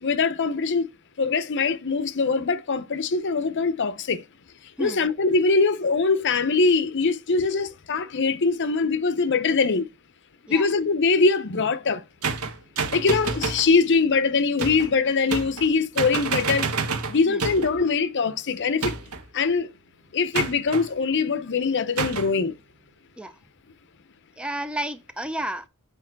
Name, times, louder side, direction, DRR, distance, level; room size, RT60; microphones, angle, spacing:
voice 1, 0.0-0.9 1.2-4.2 4.8-9.9 10.5-12.0 12.9-16.7 17.1-18.9 19.3-19.7 20.1-22.5, left 4 dB, 55° left, 0.7 m, -22 dB
sound 1, 12.2-13.7 14.6-14.9 15.3-15.7 16.0-17.8 18.8-19.3 20.3-20.9 22.0-22.3, right 4 dB, 85° right, 1.4 m, -28 dB
voice 2, 24.4-25.7, right 1 dB, 5° right, 0.5 m, -31 dB
8.2 x 5.2 x 4.6 m
head